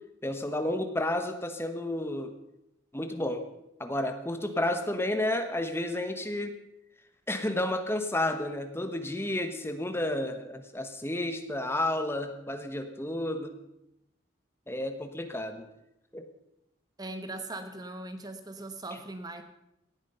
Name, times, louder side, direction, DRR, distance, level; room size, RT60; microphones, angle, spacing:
voice 1, 0.2-2.3 2.9-3.4 3.8-6.6 7.3-13.5 14.7-15.6 16.1-16.3, left 1 dB, 10° left, 7 dB, 1.1 m, -31 dB
voice 2, 17.0-19.4, right 2 dB, 20° right, 8 dB, 1.0 m, -39 dB
18.0 x 12.5 x 5.6 m, 0.86 s
head